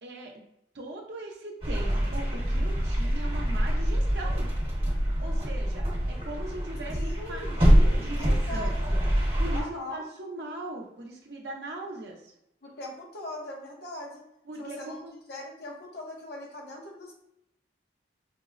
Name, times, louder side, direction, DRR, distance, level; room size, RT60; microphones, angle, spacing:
voice 1, 0.0-0.3 0.7-4.5 5.2-8.8 9.4-12.3 14.4-15.1, right 1 dB, 65° right, 0 dB, 0.6 m, -39 dB
sound 1, 1.6-9.6, equal, 35° right, 1.1 m, -25 dB
voice 2, 6.9-7.7 8.1-9.0 9.5-10.0 12.6-14.2 14.6-17.1, left 1 dB, 65° left, -1 dB, 0.8 m, -40 dB
4.6 x 2.0 x 2.4 m, 0.81 s
head